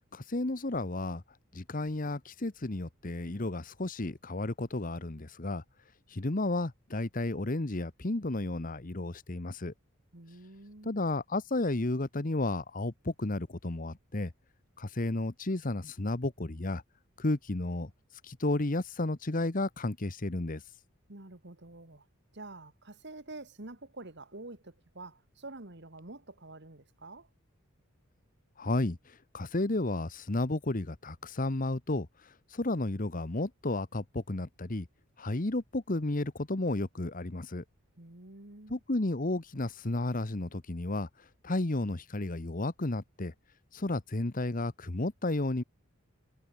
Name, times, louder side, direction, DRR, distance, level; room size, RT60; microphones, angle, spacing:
voice 1, 0.1-1.2 1.5-5.6 6.1-9.7 10.8-14.3 14.8-16.8 17.2-17.9 18.2-20.6 28.6-34.9 35.2-37.6 38.7-43.3 43.7-45.6, left 2 dB, 40° left, 1.1 m, -32 dB
voice 2, 10.1-10.9 21.1-22.1 22.3-27.3 38.0-38.8, right 2 dB, 55° right, 2.3 m, -47 dB
head